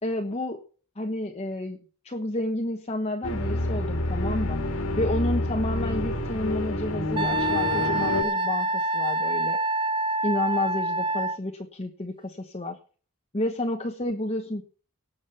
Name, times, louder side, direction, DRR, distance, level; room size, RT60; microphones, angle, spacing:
voice 1, 0.0-0.6 1.0-1.8 2.0-4.6 5.0-9.6 10.2-12.8 13.3-14.6, left 1 dB, 30° left, 3 dB, 1.1 m, -30 dB
sound 1, 3.2-8.2, left 1 dB, 70° left, 2.1 m, -28 dB
Wind instrument woodwind instrument, 7.2-11.4, right 2 dB, 20° right, 0.6 m, -26 dB
18.0 x 7.4 x 5.8 m, 0.41 s
head